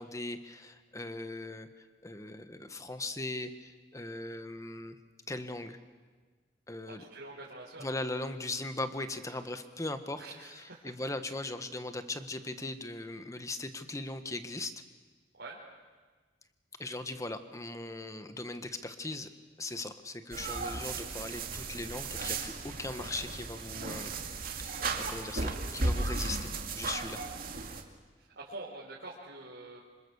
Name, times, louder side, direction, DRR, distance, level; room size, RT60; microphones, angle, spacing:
voice 1, 0.0-1.7 2.0-5.0 5.3-5.8 6.7-7.0 7.8-14.7 16.8-19.3 19.6-24.1 24.6-27.3, left 2 dB, 20° left, 9 dB, 1.3 m, -39 dB
voice 2, 6.8-7.9 10.1-10.9 15.4-15.6 28.2-29.8, right 2 dB, 80° right, -5 dB, 3.9 m, -46 dB
sound 1, 20.3-27.8, right 3 dB, 55° right, 2.3 m, -35 dB
26.0 x 26.0 x 7.1 m, 1.4 s
head